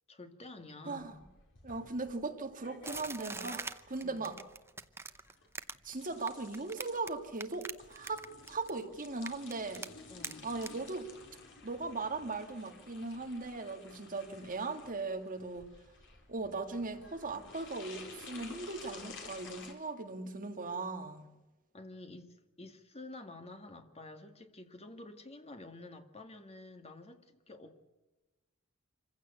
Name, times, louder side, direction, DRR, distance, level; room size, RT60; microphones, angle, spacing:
voice 1, 0.1-1.2 4.0-4.4 10.1-10.5 21.7-27.9, left 2 dB, 30° left, 1.9 m, -50 dB
voice 2, 0.8-1.2 1.6-4.4 5.8-9.9 10.4-11.1 11.6-15.7 16.3-21.3, right 3 dB, 40° right, 2.0 m, -39 dB
sound 1, 1.0-19.7, left 4 dB, 60° left, 4.2 m, -53 dB
sound 2, 2.8-7.1 7.4-8.8 9.0-9.9 10.2-10.3 10.6-10.7, right 3 dB, 10° right, 0.7 m, -42 dB
26.0 x 15.5 x 8.3 m
head